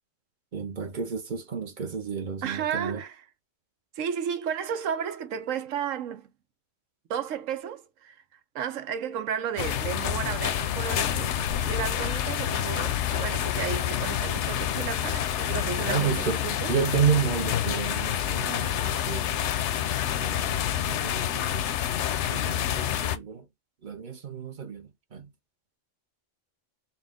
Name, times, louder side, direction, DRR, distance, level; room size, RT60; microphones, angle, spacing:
voice 1, 0.5-3.0 15.9-16.4 16.7-19.3 20.2-21.7 22.3-23.4 23.8-25.3, right 6 dB, 45° right, 0.8 m, -31 dB
voice 2, 2.4-3.3 3.9-6.3 7.1-8.2 8.5-16.8 17.1-17.2, right 8 dB, 85° right, 1.1 m, -33 dB
sound 1, 9.6-23.2, left 10 dB, 70° left, 0.8 m, -28 dB
4.2 x 2.3 x 3.6 m
omnidirectional pair, 1.3 m